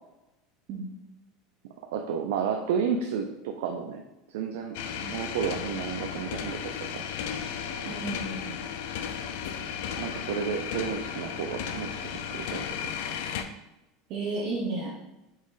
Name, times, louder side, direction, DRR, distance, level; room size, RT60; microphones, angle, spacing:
voice 1, 1.9-4.0 4.3-4.7 5.1-7.0 10.0-12.9, right 7 dB, 85° right, 3 dB, 0.4 m, -31 dB
sound 1, 4.7-13.4, left 8 dB, 75° left, 0.4 m, -34 dB
voice 2, 7.8-8.7 14.1-14.9, right 3 dB, 55° right, -5 dB, 0.9 m, -33 dB
4.0 x 2.9 x 4.0 m, 0.95 s
supercardioid pair, 135°, 0 cm